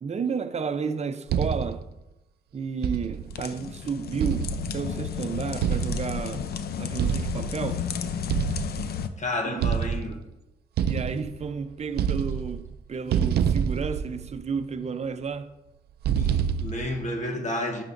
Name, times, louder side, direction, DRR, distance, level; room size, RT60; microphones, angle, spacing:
voice 1, 0.0-1.9 2.5-7.9 9.4-9.7 10.8-15.5, right 5 dB, 45° right, 0.6 m, -32 dB
sound 1, 1.3-1.9 2.8-3.4 4.2-5.0 5.6-6.4 7.0-7.6 8.3-9.1 9.6-10.3 10.8-11.6 11.9-12.8 13.1-14.6 16.0-17.0, right 8 dB, 90° right, 0.4 m, -27 dB
sound 2, 3.2-9.1, left 7 dB, 80° left, 0.6 m, -32 dB
voice 2, 9.2-10.2 16.2-17.8, left 1 dB, 50° left, 1.1 m, -31 dB
9.3 x 9.2 x 2.6 m
cardioid pair, 90°, 16 cm